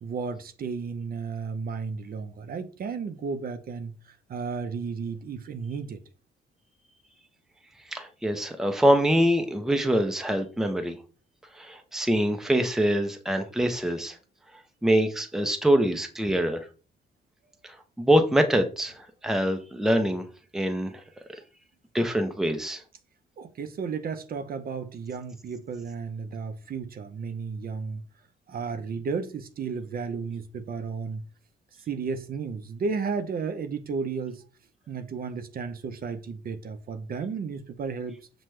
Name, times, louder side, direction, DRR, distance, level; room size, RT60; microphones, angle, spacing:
voice 1, 0.0-6.0 23.4-28.0 28.5-31.2 31.8-34.4 34.9-38.2, right 5 dB, 50° right, 0.6 m, -33 dB
voice 2, 7.9-11.0 11.6-14.2 14.8-16.6 18.0-20.2 20.5-20.9 21.9-22.8, equal, ahead, 0.6 m, -24 dB
5.9 x 2.2 x 3.2 m
cardioid pair, 90°, 20 cm